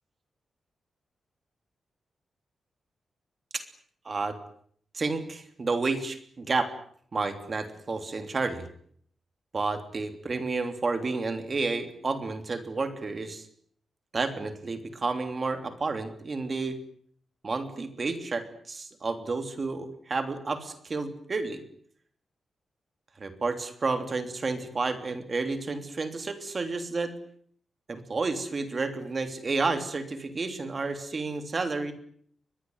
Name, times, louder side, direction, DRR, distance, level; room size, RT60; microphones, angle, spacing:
voice 1, 4.0-4.4 4.9-6.7 7.1-8.7 9.5-13.5 14.1-16.8 17.4-21.6 23.2-27.1 27.9-31.9, right 3 dB, 30° right, 8 dB, 3.2 m, -31 dB
23.5 x 21.0 x 9.4 m, 0.62 s
wide cardioid pair, 165°, 0 cm